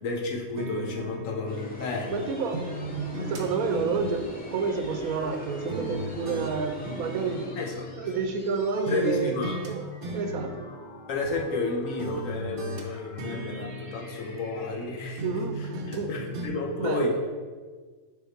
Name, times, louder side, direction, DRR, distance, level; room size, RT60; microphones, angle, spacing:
voice 1, 0.0-2.2 7.6-7.9 8.9-9.6 11.1-15.2 15.6-17.1, left 3 dB, 70° left, 1 dB, 1.2 m, -31 dB
sound 1, 0.6-2.2 2.5-5.4 5.7-8.5 8.9-9.7 10.0-11.7 12.0-14.9 15.2-16.1 16.3-16.5, right 1 dB, 50° right, 0.7 m, -37 dB
sound 2, 0.9-15.6, left 3 dB, 45° left, 0.7 m, -51 dB
sound 3, 1.5-8.1, left 1 dB, 15° left, 0.4 m, -42 dB
voice 2, 2.1-7.6 7.9-9.8 10.1-10.7 15.2-16.1 16.8-17.2, right 5 dB, 85° right, 6 dB, 1.1 m, -30 dB
5.7 x 3.7 x 4.5 m, 1.5 s
omnidirectional pair, 1.5 m